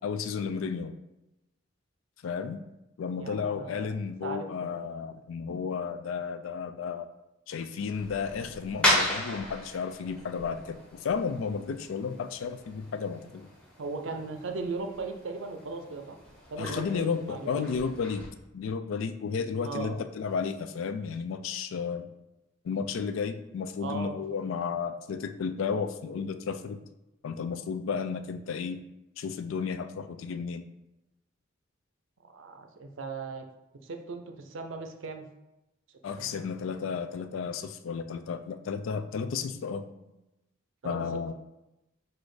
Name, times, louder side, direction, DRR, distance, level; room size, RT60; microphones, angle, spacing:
voice 1, 0.0-0.9 2.2-2.6 3.0-7.1 7.5-13.5 16.6-22.1 22.6-26.8 27.2-28.8 29.2-30.7 36.0-39.8 40.8-41.3, left 6 dB, 75° left, 10 dB, 0.3 m, -33 dB
voice 2, 3.2-3.9 4.2-4.7 13.8-16.2 16.5-17.6 19.6-19.9 23.8-24.2 32.2-33.4 33.8-35.3 36.2-36.4 40.8-41.3, right 3 dB, 70° right, 5 dB, 0.5 m, -38 dB
sound 1, 7.9-18.3, left 1 dB, 5° left, 0.9 m, -35 dB
4.1 x 2.4 x 4.7 m, 0.93 s
head